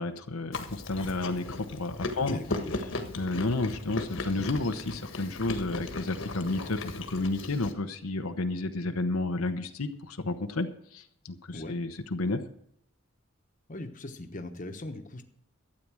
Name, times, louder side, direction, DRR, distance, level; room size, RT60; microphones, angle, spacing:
voice 1, 0.0-2.4 3.1-12.4, left 2 dB, 85° left, 7 dB, 0.9 m, -31 dB
Chewing mastication, 0.5-7.7, left 2 dB, 65° left, 1.5 m, -37 dB
voice 2, 2.2-2.9 11.5-11.8 13.7-15.2, left 1 dB, 40° left, 6 dB, 1.2 m, -40 dB
13.0 x 8.7 x 6.2 m, 0.73 s
head